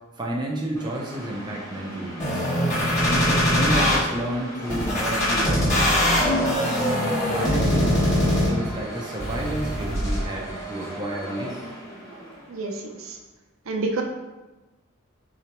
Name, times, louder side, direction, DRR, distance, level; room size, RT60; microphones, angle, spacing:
voice 1, 0.2-2.5 3.1-5.9 7.3-11.6, right 1 dB, 20° right, -2 dB, 0.5 m, -30 dB
sound 1, 0.7-13.0, right 1 dB, 15° left, 1.2 m, -37 dB
sound 2, 2.2-4.0 4.7-8.7 9.2-10.2, left 1 dB, 35° left, 1.3 m, -22 dB
voice 2, 12.5-13.2 13.7-14.0, right 3 dB, 75° right, 2 dB, 0.6 m, -28 dB
3.9 x 2.9 x 4.5 m, 1.1 s
head